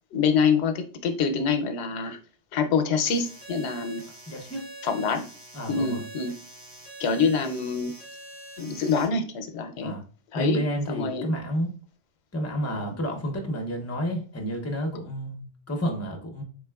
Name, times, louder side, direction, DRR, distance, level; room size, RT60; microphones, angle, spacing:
voice 1, 0.1-2.2 2.5-4.0 4.8-5.2 5.7-6.3 7.0-7.9 8.6-9.9 10.3-10.6 10.9-11.3, left 5 dB, 90° left, 7 dB, 0.9 m, -25 dB
sound 1, 3.0-9.0, right 2 dB, 20° right, 0.8 m, -44 dB
voice 2, 4.3-4.7 5.5-6.0 9.8-10.0 10.3-11.7 12.3-16.4, equal, 20° left, 2 dB, 0.6 m, -30 dB
3.7 x 3.3 x 2.2 m, 0.38 s
omnidirectional pair, 1.1 m